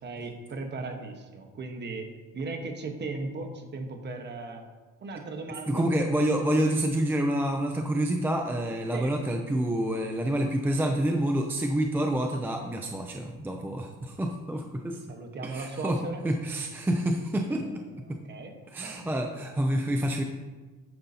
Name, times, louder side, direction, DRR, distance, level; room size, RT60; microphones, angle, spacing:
voice 1, 0.0-4.7 5.0-5.9 8.9-9.1 15.1-16.2 17.5-17.7 18.2-19.1, right 3 dB, 30° right, 4 dB, 1.2 m, -37 dB
voice 2, 5.7-15.0 15.4-17.7 18.1-18.2 18.7-20.2, right 1 dB, 5° right, 3 dB, 0.4 m, -28 dB
11.0 x 9.2 x 2.8 m, 1.3 s
cardioid pair, 150°, 33 cm